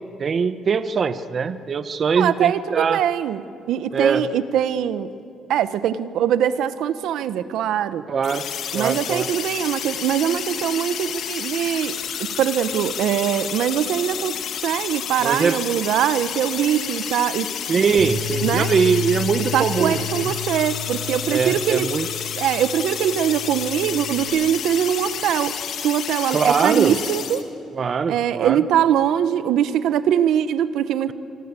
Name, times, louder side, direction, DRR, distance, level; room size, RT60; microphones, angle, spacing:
voice 1, 0.2-3.0 3.9-4.2 8.1-8.5 8.7-9.3 15.2-15.6 17.7-20.3 21.3-22.1 26.3-27.0 27.7-28.6, right 6 dB, 40° right, 12 dB, 0.9 m, -22 dB
voice 2, 2.2-3.4 3.7-5.1 5.5-8.0 8.7-14.4 14.6-17.5 18.4-18.7 19.5-21.9 22.4-25.6 25.8-27.4 28.1-31.1, right 10 dB, 85° right, 13 dB, 1.0 m, -22 dB
sound 1, 8.2-27.4, left 8 dB, 65° left, 2.1 m, -30 dB
Bass guitar, 18.0-24.2, left 5 dB, 70° right, 3.8 m, -32 dB
26.0 x 24.5 x 8.3 m, 2.5 s
cardioid pair, 150°, 0 cm